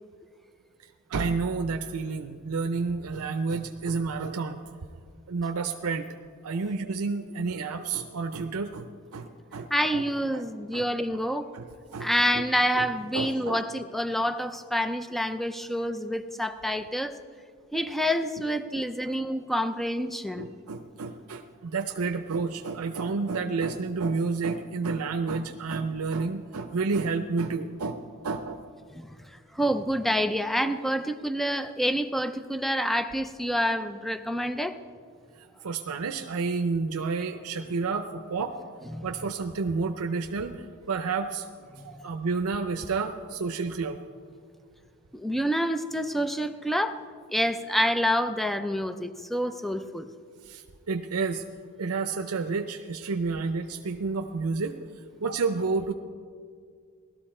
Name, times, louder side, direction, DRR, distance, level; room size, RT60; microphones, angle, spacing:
voice 1, 1.1-4.6 5.3-6.1 6.4-10.0 10.3-10.4 10.7-10.9 11.5-12.4 12.7-12.9 13.1-13.6 19.1-19.2 20.4-28.6 35.4-38.6 39.0-41.5 41.8-44.0 50.4-51.4 51.8-54.7 55.2-55.9, right 4 dB, 80° right, 7 dB, 0.6 m, -30 dB
voice 2, 9.7-11.5 12.0-17.2 17.7-20.5 28.9-29.1 29.5-34.8 38.9-39.1 41.8-42.0 45.1-47.0 47.3-50.1, equal, ahead, 10 dB, 0.4 m, -27 dB
18.0 x 13.0 x 4.3 m, 2.1 s
head